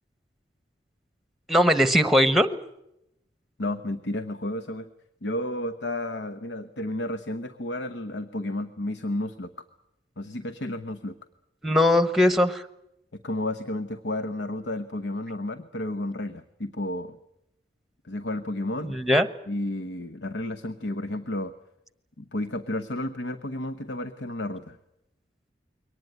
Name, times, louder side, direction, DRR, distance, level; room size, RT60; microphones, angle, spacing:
voice 1, 1.5-2.6 11.6-12.6 18.8-19.3, left 1 dB, ahead, 13 dB, 1.1 m, -20 dB
voice 2, 3.6-4.9 5.2-9.7 10.2-11.1 13.2-17.2 18.0-19.0 19.5-21.5 22.2-24.8, left 1 dB, 75° left, 11 dB, 1.1 m, -32 dB
23.0 x 19.0 x 9.3 m, 0.85 s
head